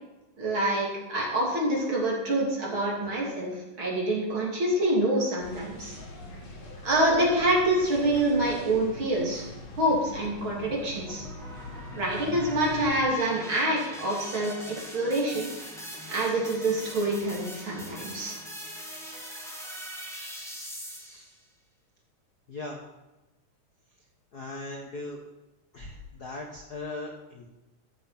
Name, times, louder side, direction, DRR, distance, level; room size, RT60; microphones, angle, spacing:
voice 1, 0.4-5.9 6.8-9.4 9.8-11.2 11.9-15.5 16.1-18.4, right 1 dB, 40° right, -3 dB, 3.5 m, -26 dB
sound 1, 5.4-13.0, left 1 dB, 80° left, 4.4 m, -42 dB
sound 2, 10.2-21.4, equal, ahead, 1.7 m, -42 dB
voice 2, 22.5-22.8 24.3-25.2 25.7-27.5, left 2 dB, 50° left, 1 dB, 1.2 m, -39 dB
13.5 x 7.7 x 5.9 m, 1.0 s
omnidirectional pair, 3.6 m